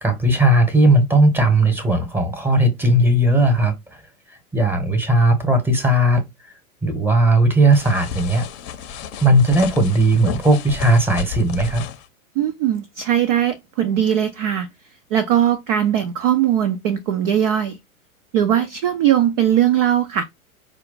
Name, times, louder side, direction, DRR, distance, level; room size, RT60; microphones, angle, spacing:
voice 1, 0.0-4.0 4.5-6.2 6.8-8.5 9.2-11.8, right 1 dB, 5° right, 1.0 m, -17 dB
sound 1, 7.7-12.1, left 7 dB, 30° left, 0.8 m, -32 dB
voice 2, 12.4-14.7 15.1-17.8 18.3-20.2, right 10 dB, 30° right, 0.3 m, -19 dB
4.8 x 2.3 x 3.8 m
figure-of-eight pair, 100°, 44 cm